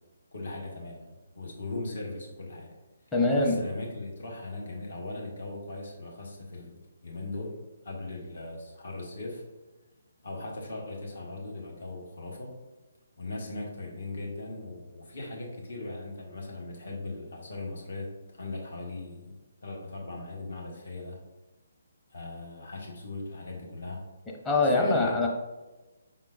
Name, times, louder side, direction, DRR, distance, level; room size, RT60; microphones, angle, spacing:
voice 1, 0.3-2.7 3.4-7.5 7.8-9.4 10.2-12.5 13.2-21.2 22.1-24.0 24.7-25.1, left 2 dB, 65° left, -1 dB, 1.2 m, -39 dB
voice 2, 3.1-3.5 24.3-25.3, left 2 dB, 10° left, -2 dB, 0.7 m, -24 dB
5.6 x 3.7 x 2.5 m, 1.1 s
figure-of-eight pair, 140°, 0 cm